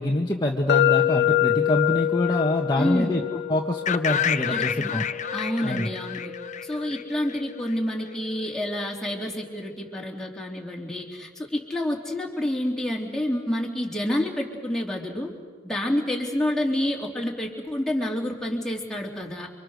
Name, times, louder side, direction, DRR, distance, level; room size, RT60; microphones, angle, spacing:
voice 1, 0.0-5.1 5.6-5.9, left 1 dB, 20° left, 0 dB, 1.5 m, -25 dB
sound 1, 0.7-8.6, left 11 dB, 55° left, 1.1 m, -27 dB
voice 2, 2.8-3.2 4.5-4.9 5.3-6.3 6.6-15.3 15.6-19.5, left 1 dB, 5° left, -2 dB, 3.4 m, -28 dB
sound 2, 3.0-8.1 9.0-9.1, equal, 55° right, 6.3 m, -47 dB
sound 3, 3.9-7.7, left 8 dB, 40° left, 0.7 m, -29 dB
29.0 x 25.5 x 6.6 m, 1.5 s
head